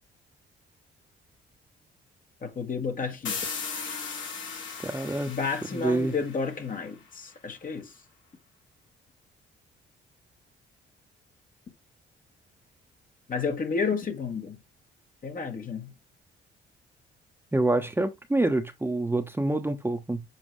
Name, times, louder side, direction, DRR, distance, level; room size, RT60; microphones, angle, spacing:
voice 1, 2.4-3.5 5.3-8.0 13.3-14.6 15.2-15.9, left 5 dB, 45° left, 1.6 m, -31 dB
sound 1, 3.2-6.9, left 5 dB, 70° left, 3.0 m, -37 dB
voice 2, 4.8-5.3 5.7-6.1 17.5-20.2, right 2 dB, 10° right, 1.0 m, -26 dB
7.4 x 5.0 x 3.3 m
cardioid pair, 90°, 20 cm